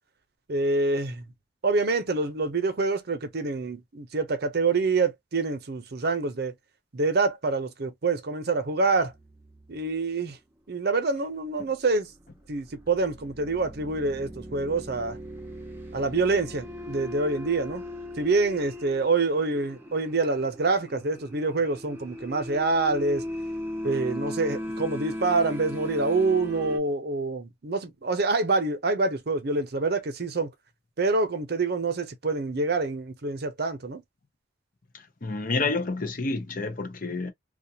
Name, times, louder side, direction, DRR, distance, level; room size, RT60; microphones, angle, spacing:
voice 1, 0.5-1.3 1.6-6.5 6.9-9.1 9.7-10.4 10.7-12.1 12.5-15.2 15.9-17.8 18.2-23.2 23.8-30.5 31.0-34.0, right 3 dB, 60° right, 0.7 m, -26 dB
sound 1, 9.0-9.8 12.1-26.8, left 1 dB, 15° right, 0.6 m, -38 dB
voice 2, 35.2-37.3, left 3 dB, 50° left, 0.7 m, -29 dB
2.4 x 2.2 x 2.8 m
head